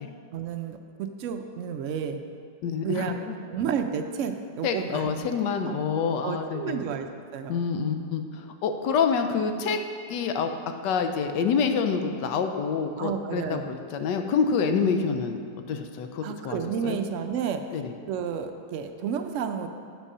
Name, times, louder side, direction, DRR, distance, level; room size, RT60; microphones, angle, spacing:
voice 1, 0.3-2.2 2.8-3.2 3.5-5.3 5.6-5.7 6.2-7.6 13.0-13.8 16.2-17.8 18.1-19.7, right 7 dB, 85° right, 6 dB, 0.6 m, -31 dB
voice 2, 2.6-3.0 4.6-6.8 7.5-8.2 8.6-9.8 10.1-10.5 10.8-15.4 15.7-17.0 17.7-17.9, left 6 dB, 85° left, 6 dB, 1.3 m, -27 dB
8.2 x 6.2 x 5.4 m, 2.3 s
omnidirectional pair, 1.9 m